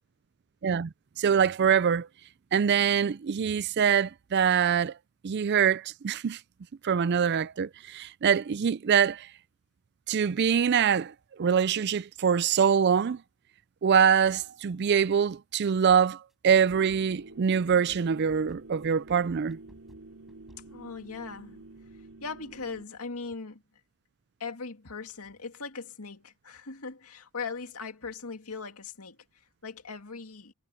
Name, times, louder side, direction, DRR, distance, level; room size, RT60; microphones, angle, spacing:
voice 1, 0.6-2.1 2.5-4.9 5.2-6.4 6.8-9.3 10.1-13.2 13.8-19.6, right 7 dB, 50° right, 0.4 m, -24 dB
sound 1, 15.3-15.5 15.9-20.7, equal, ahead, 5.1 m, -55 dB
sound 2, 16.5-22.8, right 2 dB, 70° right, 3.8 m, -48 dB
voice 2, 20.7-21.6 22.2-23.6 24.4-29.2 29.6-30.5, left 4 dB, 85° left, 2.2 m, -39 dB
head